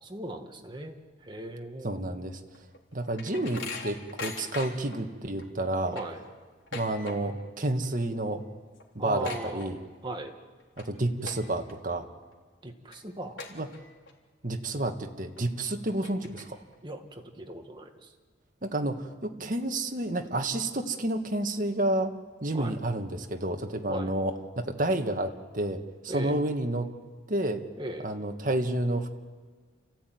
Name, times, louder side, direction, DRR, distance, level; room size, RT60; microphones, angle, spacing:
voice 1, 0.0-2.0 5.9-6.2 9.0-9.8 10.0-10.4 12.6-13.4 16.8-18.1 22.5-22.7 23.9-24.1 26.1-26.4 27.8-28.1, right 1 dB, 25° right, 4 dB, 1.9 m, -38 dB
voice 2, 1.8-2.4 2.9-5.9 6.7-8.4 8.9-9.8 10.8-12.1 13.5-13.7 14.4-16.6 18.6-22.1 22.4-26.9 27.3-27.6 28.0-29.1, right 1 dB, 45° right, 5 dB, 1.7 m, -30 dB
sound 1, 2.5-5.0 5.4-5.5 5.8-7.5 7.7-8.1 8.4-8.5 8.8-10.2 10.6-10.8 11.2-11.7 12.2-12.3 12.9-13.0 13.4-14.1 14.5-14.6 15.4-15.5 15.9-16.8, left 3 dB, 85° left, 3.6 m, -41 dB
28.5 x 15.5 x 9.4 m, 1.5 s
head